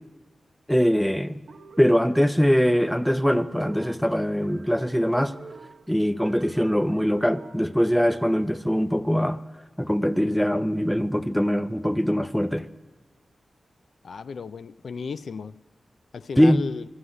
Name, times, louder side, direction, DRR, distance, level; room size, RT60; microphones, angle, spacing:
voice 1, 0.7-1.4 1.8-5.4 5.9-9.4 9.8-12.7 16.4-16.6, equal, 5° left, 0.5 m, -22 dB
sound 1, 1.5-8.5, right 4 dB, 80° right, 1.0 m, -47 dB
voice 2, 14.0-15.6 16.1-16.8, left 5 dB, 75° left, 0.3 m, -34 dB
11.5 x 7.9 x 9.9 m
cardioid pair, 60°, 0 cm